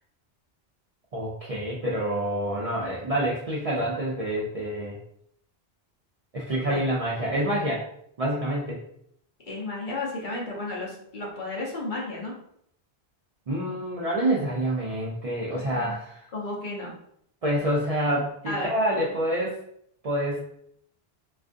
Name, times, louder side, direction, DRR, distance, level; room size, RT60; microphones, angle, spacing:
voice 1, 1.1-5.0 6.3-7.9 8.2-8.8 13.5-16.3 17.4-19.6 20.0-20.4, right 1 dB, 55° right, -5 dB, 0.4 m, -27 dB
voice 2, 9.5-12.3 16.3-16.9 18.4-18.7, left 2 dB, 55° left, -3 dB, 0.8 m, -32 dB
2.4 x 2.4 x 2.4 m, 0.70 s
omnidirectional pair, 1.1 m